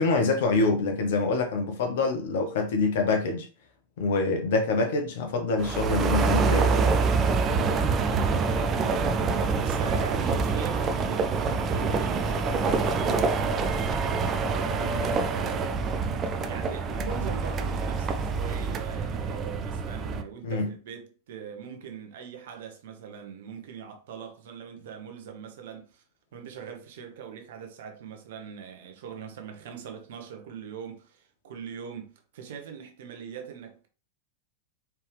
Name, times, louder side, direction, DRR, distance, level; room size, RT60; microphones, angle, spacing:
voice 1, 0.0-3.5 4.0-6.8 20.4-20.7, left 3 dB, 55° left, 1.0 m, -25 dB
sound 1, 5.6-20.2, right 4 dB, 25° right, 0.5 m, -26 dB
voice 2, 8.0-8.6 9.5-15.8 16.5-26.0 26.3-33.9, right 7 dB, 55° right, 1.0 m, -41 dB
4.6 x 3.4 x 3.3 m
figure-of-eight pair, 90°, 0 cm